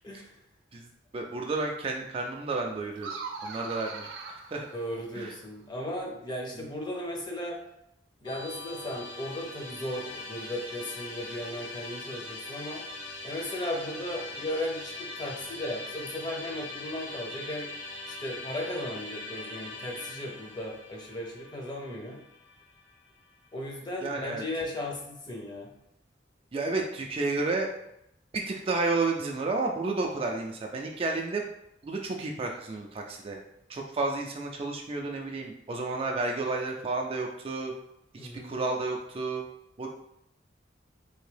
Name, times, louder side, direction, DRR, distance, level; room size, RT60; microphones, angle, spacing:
voice 1, 0.0-0.4 4.7-7.6 8.2-12.8 13.2-17.7 18.1-22.2 23.5-25.7 38.2-38.6, left 1 dB, 25° left, 0 dB, 0.6 m, -36 dB
voice 2, 1.1-3.1 3.4-4.7 5.1-5.3 24.0-24.4 26.5-27.7 28.5-31.4 31.8-33.4 33.7-37.7 38.1-39.4 39.8-39.9, right 3 dB, 30° right, 1 dB, 0.3 m, -31 dB
sound 1, 3.0-5.5, right 4 dB, 80° right, 0.6 m, -41 dB
Musical instrument, 8.3-23.4, left 2 dB, 80° left, 0.8 m, -41 dB
3.4 x 2.7 x 3.3 m, 0.81 s
head